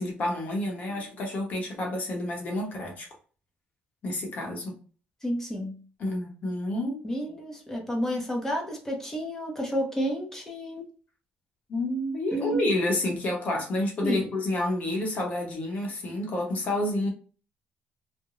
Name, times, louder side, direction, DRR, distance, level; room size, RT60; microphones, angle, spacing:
voice 1, 0.0-3.1 4.0-4.8 6.0-7.0 11.7-17.1, left 1 dB, 40° left, 0.8 m, -29 dB
voice 2, 5.2-5.8 7.0-10.9 12.3-12.6 14.0-14.3, equal, 10° left, 0.6 m, -30 dB
2.5 x 2.0 x 2.9 m
cardioid pair, 145°, 4 cm